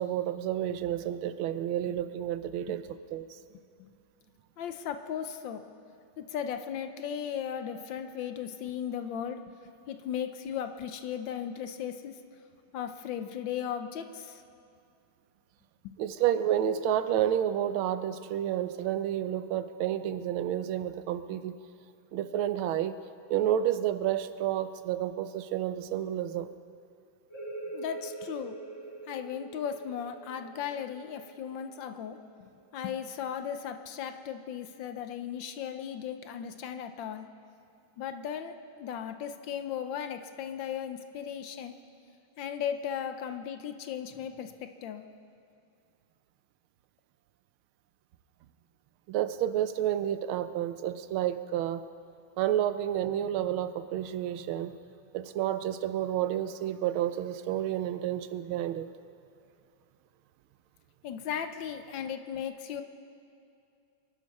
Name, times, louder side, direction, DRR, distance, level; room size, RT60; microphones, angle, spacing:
voice 1, 0.0-3.4 16.0-21.6 22.1-23.0 23.3-26.5 49.1-51.8 52.4-54.8 55.1-58.9, right 11 dB, 80° right, 12 dB, 1.5 m, -30 dB
voice 2, 4.6-5.6 6.2-9.4 9.9-12.1 12.7-14.4 27.7-28.6 29.1-37.3 38.0-41.7 42.4-45.0 61.0-62.8, left 8 dB, 70° left, 8 dB, 1.3 m, -36 dB
sound 1, 27.3-32.7, right 2 dB, 35° left, 2.4 m, -44 dB
24.5 x 11.5 x 4.2 m, 2.5 s
omnidirectional pair, 2.3 m